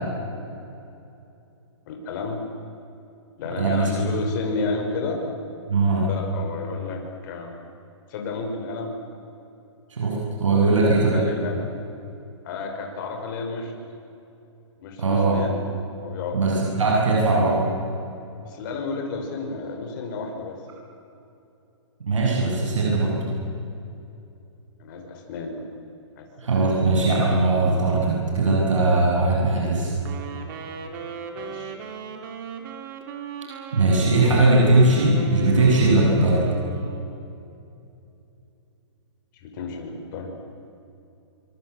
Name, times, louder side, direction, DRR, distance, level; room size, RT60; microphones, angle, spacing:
voice 1, 1.9-2.5 3.4-5.2 6.1-7.6 8.1-8.9 10.6-10.9 11.1-11.7 12.4-13.7 14.8-15.6 16.0-16.4 18.4-20.6 24.8-25.6 26.2-26.3 31.3-31.7 39.4-40.3, left 3 dB, 40° left, 2 dB, 5.6 m, -31 dB
voice 2, 3.6-4.1 5.7-6.1 9.9-11.2 15.0-15.4 16.3-17.6 22.1-23.2 26.4-29.9 33.7-36.4, right 2 dB, 90° right, -3 dB, 7.8 m, -20 dB
Wind instrument woodwind instrument, 30.0-37.2, right 6 dB, 45° right, 3.3 m, -37 dB
25.0 x 24.0 x 8.2 m, 2.7 s
hypercardioid pair, 150°, 16 cm